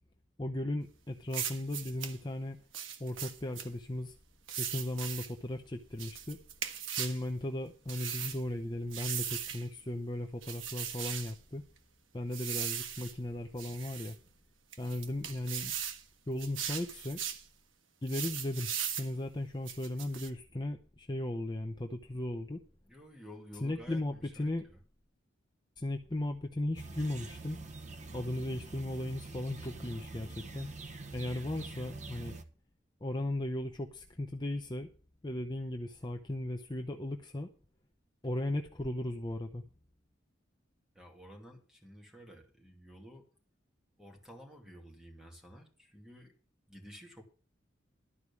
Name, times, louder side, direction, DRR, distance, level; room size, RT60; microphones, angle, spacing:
voice 1, 0.4-2.6 3.0-4.1 4.6-6.4 7.0-11.6 12.1-14.2 14.8-15.7 16.3-17.2 18.0-18.7 19.0-22.6 23.6-24.7 25.8-27.6 28.1-30.7 31.1-32.4 33.0-34.9 35.2-37.5 38.2-39.6, left 1 dB, 20° left, 4 dB, 0.7 m, -36 dB
sound 1, 1.3-2.2 2.7-3.7 4.5-5.3 6.0-7.2 7.9-8.4 8.9-9.6 10.4-11.3 12.3-13.1 13.6-14.1 14.7-16.0 16.4-17.4 18.1-19.1 19.7-20.3, right 9 dB, 85° right, 1.3 m, -38 dB
voice 2, 22.9-24.8 40.9-43.3 44.0-46.3 46.7-47.2, equal, 5° right, 1 dB, 2.5 m, -52 dB
sound 2, 26.7-32.4, right 3 dB, 40° right, 1.0 m, -45 dB
12.5 x 4.8 x 8.4 m, 0.39 s
head